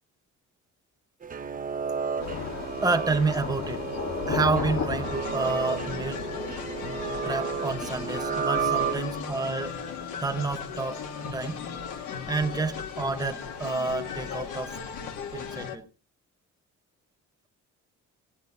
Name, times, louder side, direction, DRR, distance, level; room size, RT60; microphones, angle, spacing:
sound 1, 1.2-9.4, right 7 dB, 30° right, 0.6 m, -32 dB
Thunder / Rain, 2.2-15.6, left 6 dB, 65° left, 1.7 m, -38 dB
voice 1, 2.8-3.8 4.3-6.2 7.2-9.8 10.2-11.0 11.3-11.6 12.3-14.8 15.3-15.8, right 4 dB, 10° right, 1.1 m, -29 dB
sound 2, 5.0-15.8, left 6 dB, 90° left, 1.7 m, -37 dB
17.5 x 8.1 x 4.8 m
cardioid pair, 90°, 30 cm